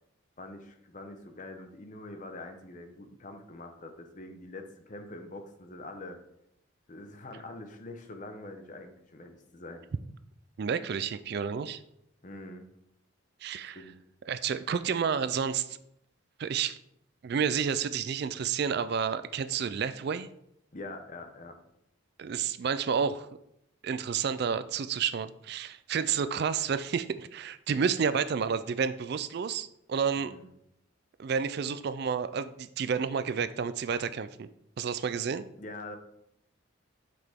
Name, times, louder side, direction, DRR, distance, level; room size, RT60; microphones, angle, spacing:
voice 1, 0.4-6.2 6.9-9.8 12.2-12.6 13.5-13.9 20.7-21.6 30.1-30.5 35.5-36.0, left 2 dB, 40° left, 5 dB, 0.9 m, -44 dB
voice 2, 10.6-11.8 13.4-13.8 14.3-15.8 16.4-16.8 17.2-20.3 22.2-23.3 23.8-30.3 31.2-34.5 34.8-35.4, right 6 dB, 50° right, 13 dB, 0.3 m, -30 dB
8.2 x 6.0 x 3.6 m, 0.78 s
head